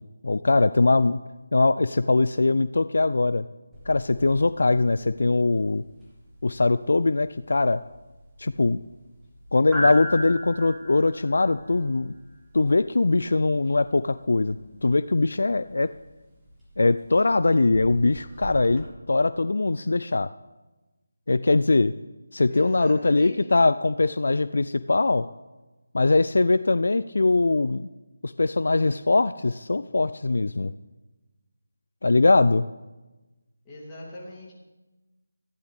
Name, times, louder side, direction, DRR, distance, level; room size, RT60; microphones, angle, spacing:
voice 1, 0.2-1.2 1.5-3.5 3.9-5.8 6.4-7.8 8.4-8.8 9.5-12.1 12.5-15.9 16.8-20.3 21.3-21.9 22.3-25.3 25.9-27.9 28.2-30.7 32.0-32.7, left 3 dB, 65° left, 14 dB, 0.3 m, -21 dB
sound 1, 3.7-18.9, equal, 5° right, 2.2 m, -39 dB
voice 2, 22.5-23.4 33.6-34.5, left 1 dB, 15° left, -7 dB, 3.0 m, -39 dB
14.5 x 10.0 x 3.5 m, 1.1 s
figure-of-eight pair, 160°, 0 cm